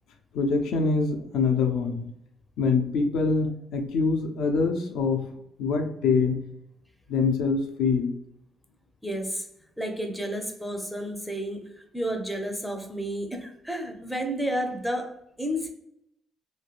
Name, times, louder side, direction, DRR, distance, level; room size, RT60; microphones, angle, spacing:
voice 1, 0.3-2.0 2.6-5.3 5.6-6.4 7.1-8.1, left 4 dB, 85° left, 3 dB, 0.5 m, -24 dB
voice 2, 9.0-9.5 9.8-15.7, equal, ahead, 3 dB, 0.6 m, -31 dB
3.2 x 2.2 x 2.4 m, 0.78 s
cardioid pair, 90°, 0 cm